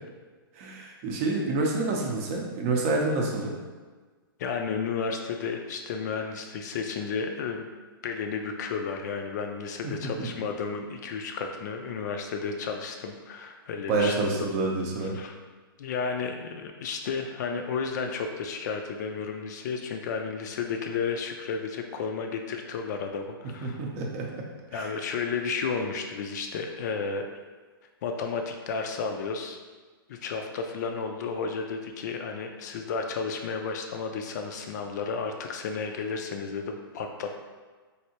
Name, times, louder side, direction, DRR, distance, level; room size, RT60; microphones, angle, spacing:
voice 1, 0.5-3.6 9.8-10.3 13.9-15.2 23.6-24.5 24.7-24.9, right 3 dB, 35° right, 0 dB, 0.6 m, -28 dB
voice 2, 4.4-7.7 8.0-14.5 15.0-15.4 15.8-23.8 24.7-27.2 28.0-29.6 30.1-37.4, left 5 dB, 50° left, 4 dB, 0.4 m, -32 dB
3.2 x 2.6 x 2.9 m, 1.4 s
hypercardioid pair, 145°, 12 cm